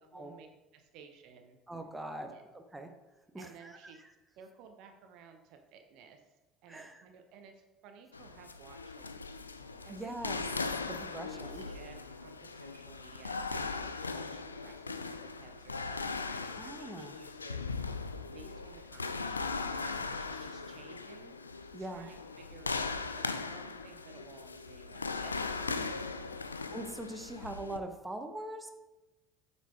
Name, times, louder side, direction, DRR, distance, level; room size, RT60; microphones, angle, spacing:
voice 1, 0.1-0.5 0.7-1.6 2.2-2.4 3.4-4.0 4.4-6.2 6.6-9.1 9.8-10.5 10.8-18.0 18.3-22.9 23.1-26.0, right 6 dB, 55° right, 6 dB, 0.8 m, -55 dB
voice 2, 1.7-2.9 3.3-3.8 6.7-7.1 9.9-10.4 10.9-11.6 16.4-17.2 21.7-22.1 26.7-28.7, right 1 dB, 10° right, 6 dB, 0.9 m, -42 dB
sound 1, 8.1-27.8, left 4 dB, 85° left, 0.3 m, -39 dB
8.1 x 4.2 x 4.6 m, 1.1 s
figure-of-eight pair, 65°, 0 cm